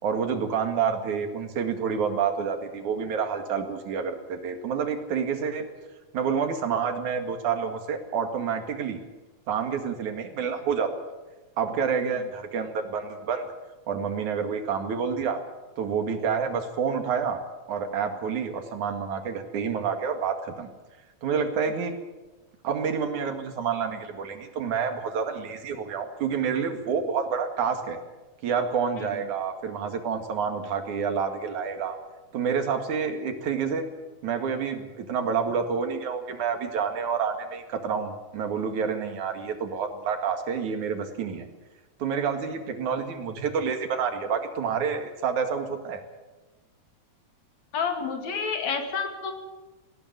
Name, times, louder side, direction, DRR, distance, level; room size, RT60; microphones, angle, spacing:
voice 1, 0.0-5.7 6.1-9.0 9.5-10.9 11.6-13.5 13.9-15.4 15.8-17.4 17.7-20.7 21.2-22.0 22.6-28.0 28.4-32.0 32.3-33.9 34.2-41.5 42.0-46.0, right 6 dB, 85° right, 6 dB, 3.5 m, -28 dB
voice 2, 47.7-49.3, left 5 dB, 70° left, 5 dB, 3.6 m, -29 dB
19.0 x 16.0 x 9.5 m, 1.2 s
omnidirectional pair, 3.3 m